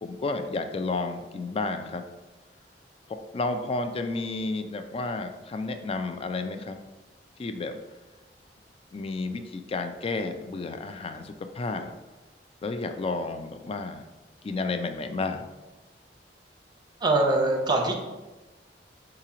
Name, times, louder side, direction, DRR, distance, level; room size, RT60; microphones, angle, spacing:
voice 1, 0.0-2.0 3.1-6.8 7.4-7.8 8.9-11.9 12.6-14.0 14.4-15.4, left 3 dB, 35° left, 7 dB, 0.3 m, -31 dB
voice 2, 17.0-18.0, right 2 dB, 25° right, 2 dB, 0.7 m, -23 dB
3.7 x 2.9 x 4.8 m, 1.1 s
head